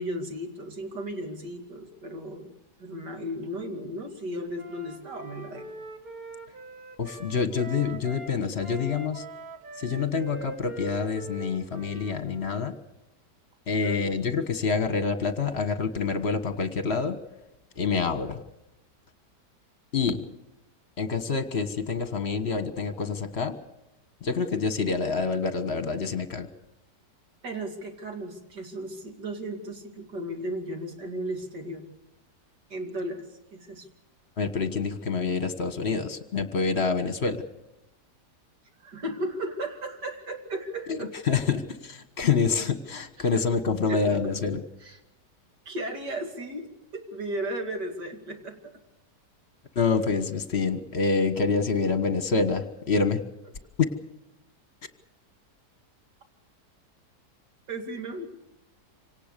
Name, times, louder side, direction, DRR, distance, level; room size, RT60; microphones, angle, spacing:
voice 1, 0.0-5.7 13.8-14.1 27.4-31.8 32.7-33.9 38.8-41.1 43.2-43.4 43.7-44.2 44.8-45.0 45.6-48.7 57.7-58.3, right 1 dB, 75° right, 4 dB, 3.4 m, -35 dB
Wind instrument woodwind instrument, 4.5-8.4 8.6-12.7, right 2 dB, 55° right, 2.4 m, -43 dB
voice 2, 7.0-9.2 9.8-12.7 13.7-17.2 17.8-18.4 19.9-20.2 21.0-23.6 24.2-26.5 34.4-37.4 40.9-41.0 41.3-44.6 49.7-53.2, left 5 dB, 40° left, 10 dB, 1.6 m, -27 dB
26.0 x 18.0 x 6.8 m, 0.91 s
omnidirectional pair, 1.8 m